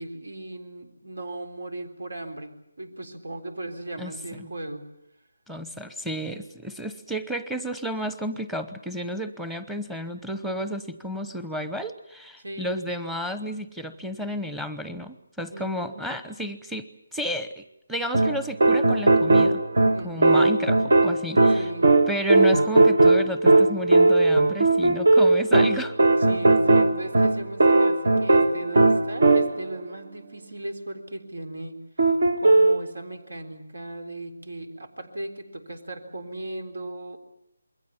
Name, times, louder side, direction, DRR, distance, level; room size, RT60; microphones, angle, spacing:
voice 1, 0.0-2.5 2.8-4.9 12.4-12.8 15.5-16.2 19.9-20.5 21.5-21.9 26.3-31.8 32.4-37.2, right 2 dB, 80° right, 8 dB, 3.9 m, -37 dB
voice 2, 5.5-19.6 20.0-21.7 22.1-25.9, equal, 5° right, 11 dB, 0.9 m, -32 dB
sound 1, 18.1-29.8 32.0-32.8, right 2 dB, 65° right, 1.6 m, -18 dB
27.5 x 21.5 x 7.2 m, 0.80 s
figure-of-eight pair, 165°, 0 cm